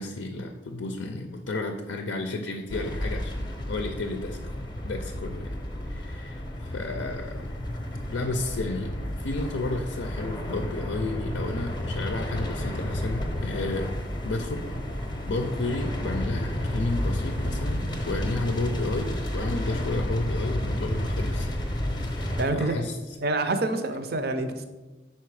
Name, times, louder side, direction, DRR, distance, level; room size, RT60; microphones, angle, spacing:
voice 1, 0.0-4.4 4.8-5.6 5.8-7.5 8.1-13.9 14.2-14.7 15.3-21.5 21.8-22.9, left 2 dB, 70° left, 4 dB, 0.5 m, -32 dB
sound 1, 2.7-22.4, left 1 dB, 25° left, 0.7 m, -31 dB
voice 2, 22.1-22.8 23.2-24.6, right 2 dB, 50° right, 8 dB, 0.5 m, -27 dB
5.7 x 4.4 x 4.7 m, 1.2 s
head